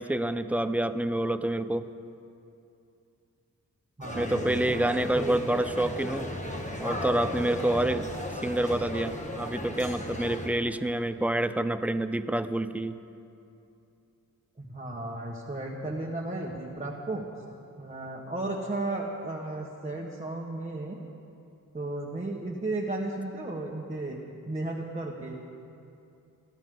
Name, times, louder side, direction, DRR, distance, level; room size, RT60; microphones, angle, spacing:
voice 1, 0.0-1.9 4.1-6.3 6.8-8.1 8.4-13.0, right 1 dB, 5° right, 11 dB, 0.5 m, -28 dB
sound 1, 4.0-10.5, left 1 dB, 20° left, 1.5 m, -36 dB
voice 2, 4.0-4.6 5.2-5.3 14.6-17.2 17.8-21.0 21.7-24.2 24.5-25.4, right 2 dB, 20° right, -3 dB, 1.4 m, -34 dB
29.5 x 11.5 x 3.8 m, 2.6 s
wide cardioid pair, 115°, 33 cm